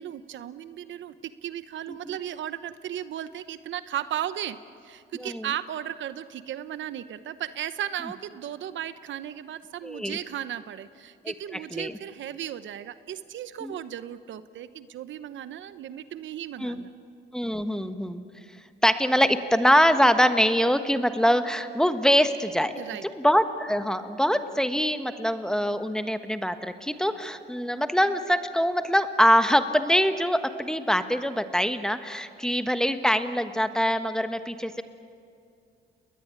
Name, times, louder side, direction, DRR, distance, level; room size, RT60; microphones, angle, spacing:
voice 1, 0.0-4.6 4.8-16.9 22.7-23.0, right 11 dB, 70° right, 13 dB, 0.9 m, -35 dB
voice 2, 9.8-10.2 11.2-11.3 11.7-11.9 13.6-13.8 16.6-16.8 17.3-18.2 18.8-22.7 23.0-34.8, equal, 5° left, 9 dB, 1.3 m, -24 dB
30.0 x 20.5 x 9.0 m, 2.5 s
cardioid pair, 90°, 20 cm